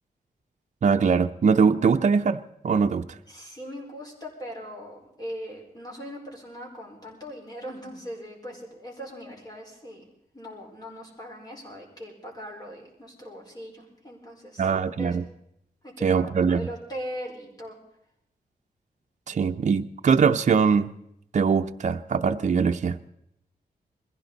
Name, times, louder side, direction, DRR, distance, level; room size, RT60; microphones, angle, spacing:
voice 1, 0.8-3.2 14.6-15.2 16.0-16.7 19.3-20.9 21.3-23.1, right 6 dB, 50° right, 6 dB, 0.6 m, -22 dB
voice 2, 3.3-10.1 10.3-14.7 15.0-15.2 15.8-17.8, equal, 25° left, 0 dB, 4.7 m, -40 dB
21.5 x 15.5 x 4.0 m, 0.77 s
wide cardioid pair, 140°, 16 cm